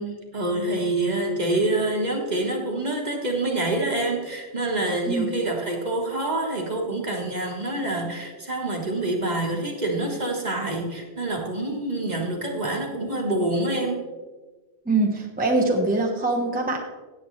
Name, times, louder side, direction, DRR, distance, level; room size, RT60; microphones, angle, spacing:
voice 1, 0.0-14.0, right 2 dB, 35° right, 1 dB, 1.6 m, -26 dB
voice 2, 14.9-16.8, right 2 dB, 10° right, 0 dB, 1.0 m, -23 dB
17.0 x 8.0 x 3.2 m, 1.3 s
omnidirectional pair, 1.2 m